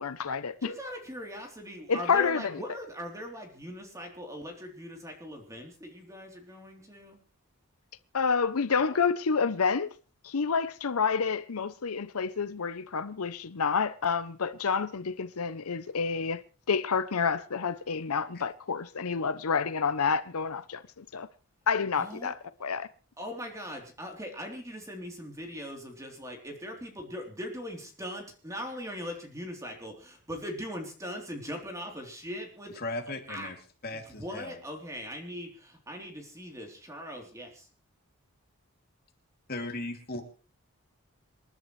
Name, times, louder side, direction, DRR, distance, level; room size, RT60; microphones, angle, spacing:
voice 1, 0.0-0.7 1.9-2.6 8.1-9.9 10.2-21.3 21.7-22.9, left 5 dB, 80° left, 0.7 m, -29 dB
voice 2, 0.6-7.2 21.9-22.3 23.2-32.8 33.3-33.5 33.9-37.7, equal, 15° right, 3.4 m, -40 dB
voice 3, 32.7-33.6 33.8-34.6 39.5-40.2, left 2 dB, 45° left, 2.8 m, -36 dB
27.5 x 11.0 x 3.2 m
head